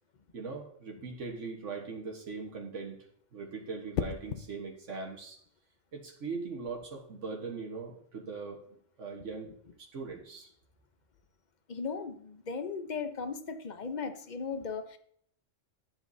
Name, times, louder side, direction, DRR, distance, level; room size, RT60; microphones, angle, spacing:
voice 1, 0.3-3.0 3.3-5.4 5.9-8.6 9.0-10.5, right 4 dB, 80° right, 1 dB, 1.7 m, -40 dB
sound 1, 1.1-1.5 3.9-4.5 6.5-6.7, left 8 dB, 85° left, 1.0 m, -36 dB
voice 2, 11.7-15.0, left 5 dB, 45° left, 9 dB, 0.8 m, -37 dB
12.0 x 7.5 x 2.7 m, 0.65 s
omnidirectional pair, 1.2 m